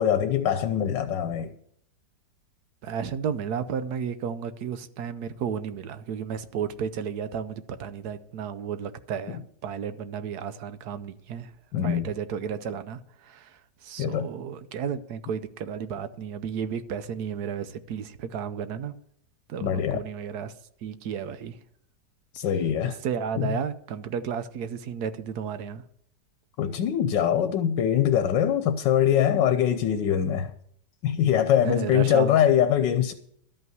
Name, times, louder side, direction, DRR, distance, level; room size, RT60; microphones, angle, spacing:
voice 1, 0.0-1.5 11.7-12.1 14.0-14.3 19.6-20.0 22.3-23.0 23.4-23.6 26.6-30.5 31.0-33.1, left 9 dB, 90° left, 1.4 m, -23 dB
voice 2, 2.8-11.5 11.8-19.0 19.5-20.5 20.8-21.6 22.9-25.8 31.6-32.4, right 7 dB, 70° right, 1.2 m, -33 dB
12.5 x 5.6 x 9.2 m
omnidirectional pair, 1.9 m